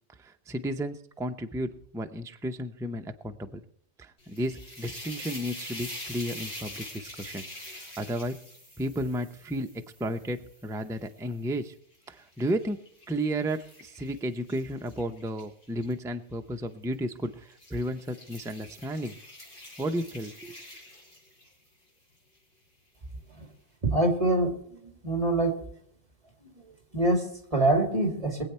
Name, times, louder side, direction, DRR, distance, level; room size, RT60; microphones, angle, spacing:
voice 1, 0.2-3.6 4.0-7.5 7.7-8.3 8.8-9.7 10.0-11.7 12.1-12.8 13.1-19.1 19.8-20.6, equal, 5° right, 6 dB, 0.4 m, -33 dB
sound 1, 4.2-11.4 11.9-15.9 16.8-17.1 17.5-21.7, left 1 dB, 45° left, 4.9 m, -45 dB
voice 2, 23.8-24.5 25.0-25.5 26.9-28.4, right 2 dB, 30° right, 3 dB, 2.4 m, -24 dB
22.0 x 8.2 x 4.4 m, 0.66 s
omnidirectional pair, 1.3 m